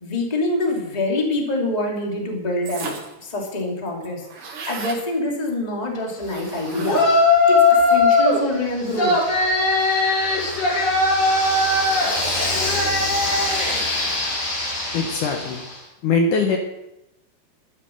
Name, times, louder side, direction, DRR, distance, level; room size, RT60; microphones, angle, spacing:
voice 1, 0.0-2.9 3.2-7.1 7.5-9.2, left 2 dB, 15° left, 0 dB, 1.6 m, -25 dB
sound 1, 2.6-3.2 3.6-3.7 3.9-5.0 6.2-7.3, right 4 dB, 55° right, 3.2 m, -34 dB
Yell, 6.8-8.4 8.9-15.7, left 3 dB, 45° left, 5.3 m, -19 dB
voice 2, 14.9-15.6 16.0-16.6, left 4 dB, 70° left, 3 dB, 1.9 m, -21 dB
12.5 x 9.6 x 6.4 m, 0.90 s
omnidirectional pair, 5.1 m